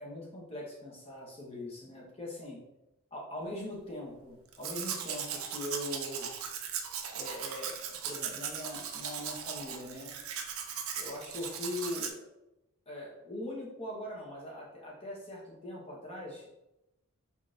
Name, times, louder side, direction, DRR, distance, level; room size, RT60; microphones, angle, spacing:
voice 1, 0.0-2.6 3.1-6.3 7.1-10.2 11.0-12.3 12.9-16.5, left 1 dB, 25° left, -4 dB, 1.1 m, -41 dB
Domestic sounds home sounds, 4.5-12.1, right 7 dB, 65° right, 0.5 m, -38 dB
3.8 x 3.6 x 2.6 m, 0.90 s
head